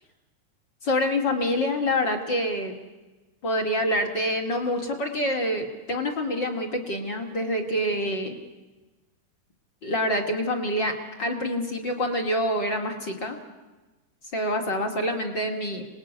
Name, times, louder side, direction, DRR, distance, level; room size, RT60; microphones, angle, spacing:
voice 1, 0.8-2.8 3.4-8.4 9.8-13.4 14.3-15.9, left 1 dB, 30° left, 4 dB, 2.5 m, -26 dB
26.0 x 20.0 x 9.6 m, 1.2 s
omnidirectional pair, 4.6 m